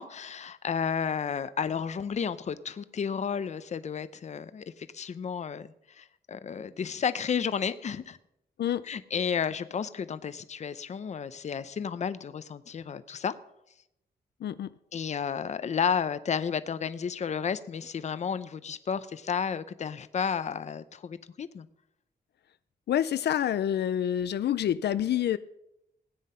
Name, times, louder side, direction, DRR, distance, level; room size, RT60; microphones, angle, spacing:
voice 1, 0.0-8.2 8.9-13.4 14.9-21.7, left 7 dB, 45° left, 14 dB, 0.6 m, -32 dB
voice 2, 14.4-14.7 22.9-25.4, left 10 dB, 85° left, 14 dB, 0.5 m, -27 dB
16.5 x 9.5 x 5.6 m, 0.83 s
wide cardioid pair, 165°, 17 cm